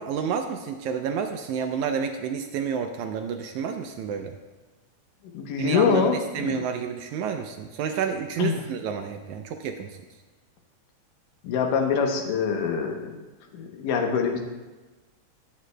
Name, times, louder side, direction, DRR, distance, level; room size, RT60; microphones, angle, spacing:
voice 1, 0.0-4.4 5.6-10.0, right 7 dB, 80° right, 5 dB, 1.8 m, -30 dB
voice 2, 5.3-6.6 8.4-8.6 11.4-13.2 13.5-14.4, left 6 dB, 85° left, 3 dB, 2.6 m, -25 dB
16.0 x 8.4 x 2.2 m, 1.2 s
omnidirectional pair, 3.7 m